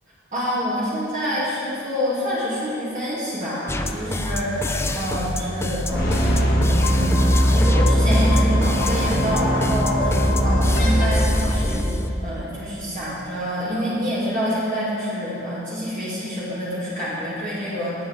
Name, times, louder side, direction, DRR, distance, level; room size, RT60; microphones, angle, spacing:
voice 1, 0.3-11.9 12.2-17.9, equal, 40° right, -9 dB, 2.4 m, -27 dB
sound 1, 3.7-12.1, left 1 dB, 15° left, 0.4 m, -27 dB
sound 2, 5.9-12.1, equal, 55° left, 1.5 m, -20 dB
17.0 x 8.5 x 3.5 m, 2.8 s
head